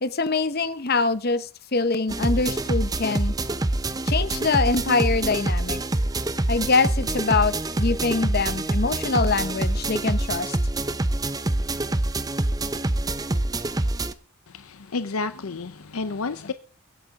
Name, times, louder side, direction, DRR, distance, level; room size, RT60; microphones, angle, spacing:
voice 1, 0.0-3.3 4.1-5.8 6.5-10.6, left 4 dB, 45° left, 0.9 m, -24 dB
sound 1, 2.1-14.1, right 2 dB, 15° right, 0.6 m, -25 dB
voice 2, 14.5-16.5, left 3 dB, 75° left, 0.7 m, -30 dB
22.5 x 8.8 x 3.7 m
head